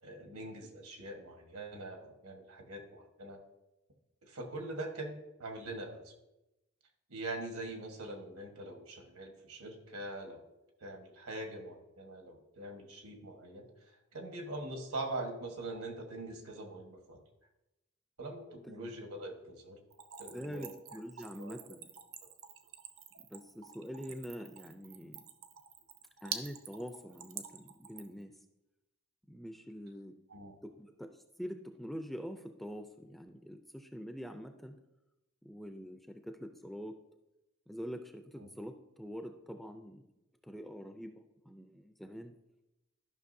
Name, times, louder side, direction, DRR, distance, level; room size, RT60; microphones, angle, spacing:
voice 1, 0.0-3.4 4.2-6.1 7.1-10.4 10.8-17.2 18.2-19.8 20.2-20.7 21.4-21.6 30.3-30.5 38.4-38.5, right 2 dB, 85° right, 4 dB, 1.4 m, -43 dB
Splash splatter / Trickle dribble, 19.9-28.2, right 8 dB, 65° right, 0.7 m, -47 dB
voice 2, 20.3-21.9 23.2-25.2 26.2-28.4 29.3-30.2 30.6-34.8 35.4-37.0 37.7-40.0 40.5-41.1 41.5-42.4, equal, ahead, 6 dB, 0.3 m, -45 dB
13.0 x 5.8 x 2.7 m, 0.95 s
head